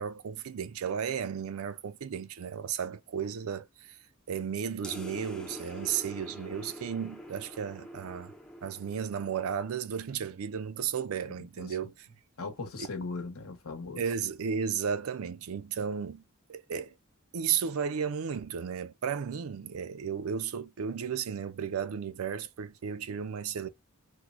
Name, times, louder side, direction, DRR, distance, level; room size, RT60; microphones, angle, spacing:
voice 1, 0.0-4.0 4.3-8.3 8.6-11.9 14.0-16.2 16.5-17.0 17.3-23.7, right 7 dB, 75° right, 0.4 m, -34 dB
sound 1, 4.8-9.7, equal, 5° left, 0.4 m, -45 dB
voice 2, 11.2-11.9 12.4-14.0, left 3 dB, 80° left, 1.0 m, -39 dB
4.4 x 2.1 x 2.4 m
head